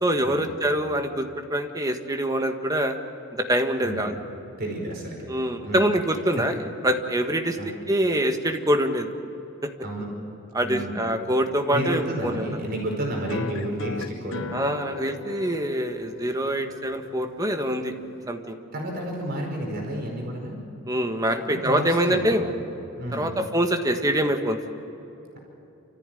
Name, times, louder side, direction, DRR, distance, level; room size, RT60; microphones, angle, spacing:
voice 1, 0.0-3.0 3.4-4.1 5.3-6.5 6.8-9.1 10.5-12.5 14.5-17.9 18.3-18.5 20.9-22.5 23.1-24.6, right 1 dB, 15° right, 5 dB, 1.5 m, -25 dB
voice 2, 4.6-5.2 5.6-5.9 7.6-7.7 9.8-10.1 10.6-11.0 11.7-14.5 18.7-20.6 21.5-22.5 23.0-23.4, right 1 dB, 50° right, 0 dB, 5.1 m, -31 dB
sound 1, 13.3-18.3, left 4 dB, 65° left, 0.8 m, -38 dB
28.5 x 14.5 x 9.2 m, 2.9 s
head